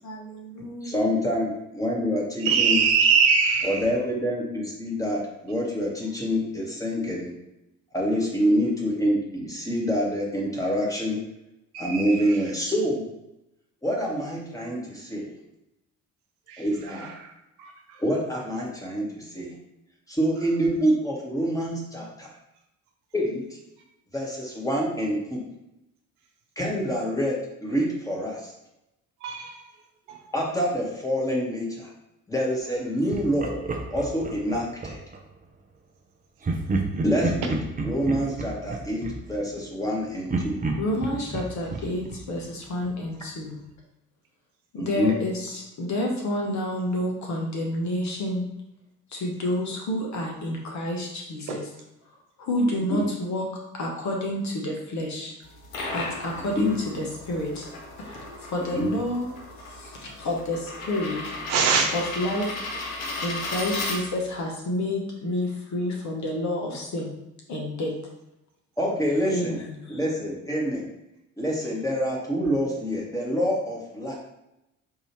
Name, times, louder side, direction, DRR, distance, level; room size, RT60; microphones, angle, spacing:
voice 1, 0.0-1.2 2.5-2.6 40.8-43.6 44.7-48.5 49.1-51.7 52.4-55.3 55.9-57.7 58.0-59.3 59.6-61.2 61.9-62.6 63.2-67.1 67.5-67.9 69.3-70.0, left 1 dB, 40° left, 1.0 m, -29 dB
voice 2, 0.8-2.8 3.6-7.3 7.9-11.2 11.8-13.0 13.8-15.3 16.6-17.1 18.0-19.5 20.1-22.3 23.1-23.4 24.1-25.4 26.6-28.5 30.3-31.9 32.3-33.6 33.9-35.0 37.0-37.6 37.8-40.6 44.8-45.1 52.9-53.1 56.5-56.7 58.7-58.9 68.8-69.6 69.9-70.9 71.4-74.1, equal, 10° left, 1.4 m, -26 dB
voice 3, 2.4-3.8 11.7-12.2 16.5-16.6 17.6-17.7 29.2-29.5 30.1-30.2 61.5-61.9, right 6 dB, 65° right, 0.7 m, -22 dB
Laughter, 33.1-35.2 36.4-39.9 40.3-43.0, right 3 dB, 20° right, 0.6 m, -31 dB
sound 1, 55.4-64.4, left 2 dB, 75° left, 0.9 m, -35 dB
4.7 x 2.7 x 3.1 m
figure-of-eight pair, 50°, 42 cm